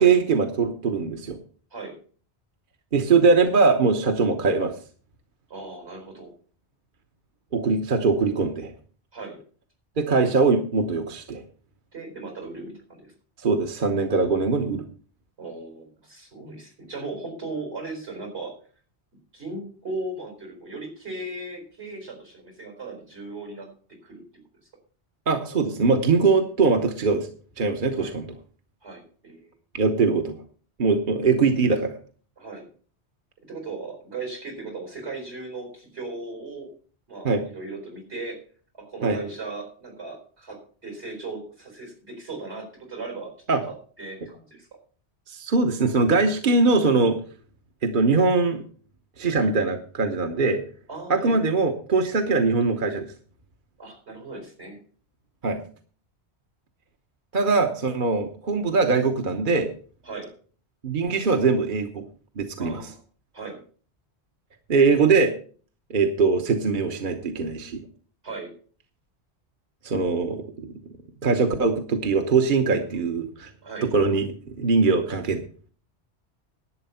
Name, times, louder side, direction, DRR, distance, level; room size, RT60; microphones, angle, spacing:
voice 1, 0.0-1.4 2.9-4.7 7.5-8.7 10.0-11.4 13.4-14.8 25.3-27.3 27.6-28.3 29.7-30.4 30.8-31.9 37.2-37.4 39.0-39.2 43.5-43.6 45.3-47.2 47.8-48.6 49.2-50.6 51.1-53.1 55.4-55.6 57.3-59.7 60.8-62.0 62.4-62.8 64.7-65.3 65.9-67.8 69.8-70.7 71.2-73.5 73.8-75.4, right 4 dB, 50° right, 5 dB, 1.2 m, -22 dB
voice 2, 5.5-6.3 9.1-9.4 11.9-13.1 15.4-18.6 19.3-24.2 27.9-28.1 28.8-29.5 32.4-32.7 33.5-36.7 37.1-38.4 38.7-43.3 43.6-44.7 50.9-51.4 53.8-54.8 60.0-60.3 62.6-63.0 63.3-63.6 68.2-68.5 72.7-73.0 73.6-73.9, right 3 dB, 75° right, 4 dB, 4.5 m, -37 dB
11.5 x 8.6 x 5.6 m, 0.43 s
omnidirectional pair, 1.1 m